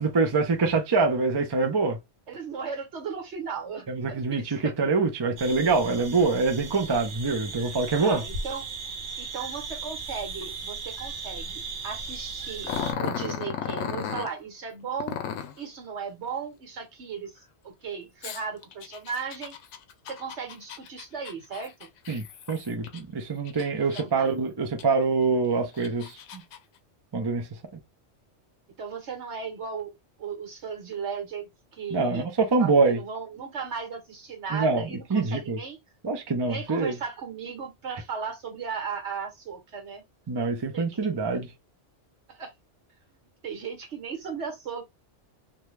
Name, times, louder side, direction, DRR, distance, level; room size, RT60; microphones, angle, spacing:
voice 1, 0.0-2.0 3.9-8.2 22.1-26.1 27.1-27.5 31.9-33.0 34.5-34.8 35.1-35.6 36.0-36.9 40.3-41.5, right 4 dB, 30° right, 0.5 m, -25 dB
voice 2, 2.3-4.7 8.0-8.7 9.2-12.7 13.0-15.2 15.6-19.5 20.1-21.9 23.9-24.3 28.8-29.9 30.2-31.5 31.8-32.3 32.6-35.8 36.4-40.0 40.7-40.9 42.3-42.5 43.4-44.8, right 6 dB, 70° right, 1.4 m, -36 dB
sound 1, 5.4-12.9, right 4 dB, 50° right, 0.8 m, -37 dB
Growling, 12.6-14.3 15.0-15.6 18.2-23.0 23.5-24.3 24.8-24.9 25.6-26.6, left 8 dB, 80° left, 0.9 m, -35 dB
2.7 x 2.3 x 3.1 m
omnidirectional pair, 1.2 m